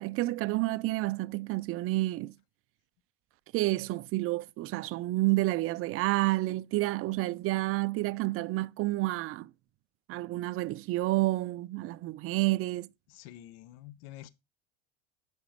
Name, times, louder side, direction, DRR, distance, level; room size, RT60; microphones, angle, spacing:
voice 1, 0.0-2.3 3.5-9.5 10.1-12.9, right 19 dB, 40° right, 0.4 m, -29 dB
voice 2, 13.1-14.3, left 13 dB, 75° left, 0.9 m, -48 dB
8.0 x 5.3 x 4.6 m
supercardioid pair, 115°, 35 cm